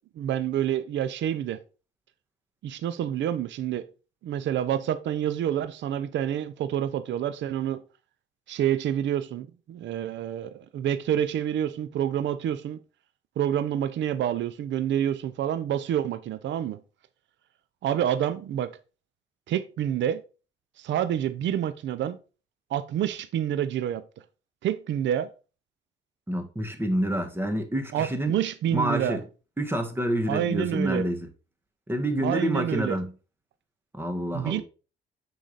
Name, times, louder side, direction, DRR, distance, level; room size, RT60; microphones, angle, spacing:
voice 1, 0.2-1.6 2.6-3.8 4.2-7.8 8.5-12.8 13.4-16.8 17.8-18.7 19.5-20.2 20.8-22.2 22.7-24.0 24.6-25.3 27.9-29.2 30.3-31.0 32.2-33.0 34.3-34.6, right 10 dB, 65° right, 0.6 m, -28 dB
voice 2, 26.3-28.3 28.7-29.2 29.6-31.3 31.9-33.1 33.9-34.6, right 1 dB, 10° right, 1.5 m, -28 dB
6.4 x 4.9 x 4.0 m
cardioid pair, 90°, 20 cm